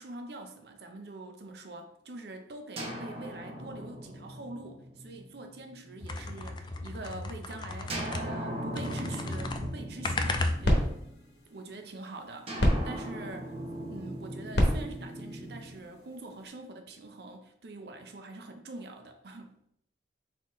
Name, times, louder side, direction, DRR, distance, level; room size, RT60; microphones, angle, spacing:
voice 1, 0.0-11.0 11.5-13.5 13.9-19.6, right 2 dB, 65° right, 5 dB, 0.6 m, -44 dB
sound 1, 2.8-6.6 7.9-11.5 12.5-16.6, right 1 dB, 35° right, 0.9 m, -40 dB
sound 2, 6.0-8.5 8.8-11.0, left 2 dB, 25° left, 0.3 m, -35 dB
sound 3, 10.1-16.5, equal, 80° left, 1.0 m, -32 dB
4.1 x 4.0 x 3.1 m, 0.72 s
head